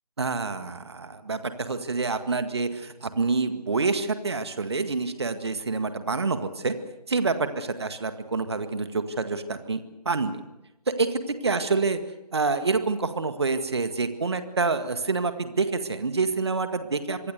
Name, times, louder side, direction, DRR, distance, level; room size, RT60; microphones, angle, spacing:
voice 1, 0.2-6.7 7.1-10.4 10.9-12.0 12.3-17.3, right 4 dB, 40° right, 9 dB, 1.9 m, -27 dB
26.5 x 22.5 x 6.8 m, 0.95 s
figure-of-eight pair, 160°, 21 cm